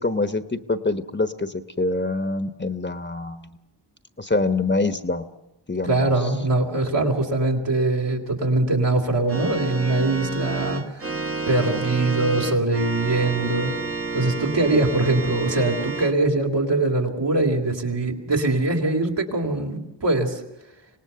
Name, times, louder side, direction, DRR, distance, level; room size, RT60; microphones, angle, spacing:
voice 1, 0.0-3.5 4.2-5.3 5.7-6.1, left 3 dB, 25° left, 9 dB, 1.2 m, -25 dB
voice 2, 5.8-11.1 11.5-13.7 14.1-20.4, right 2 dB, 70° right, 1 dB, 3.3 m, -22 dB
Organ, 9.3-16.1, right 4 dB, 30° right, 1.1 m, -30 dB
25.5 x 18.5 x 6.9 m, 0.95 s
cardioid pair, 40°, 43 cm